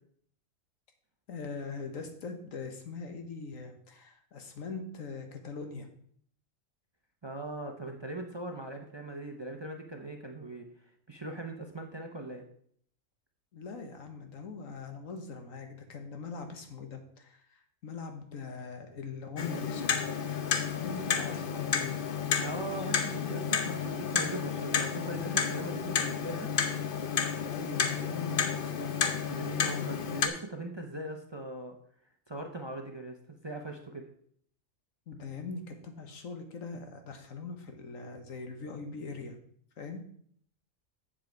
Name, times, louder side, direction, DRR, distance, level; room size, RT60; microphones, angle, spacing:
voice 1, 1.3-5.9 13.5-20.0 20.7-22.0 27.5-29.1 35.1-39.4 39.8-40.0, left 4 dB, 80° left, 6 dB, 1.6 m, -41 dB
voice 2, 7.2-10.7 11.1-12.4 22.4-26.5 29.3-31.8 32.3-34.1, right 2 dB, 25° right, 3 dB, 0.7 m, -40 dB
Clock, 19.4-30.3, left 7 dB, 50° left, 0.8 m, -31 dB
7.5 x 7.3 x 4.6 m, 0.62 s
omnidirectional pair, 1.4 m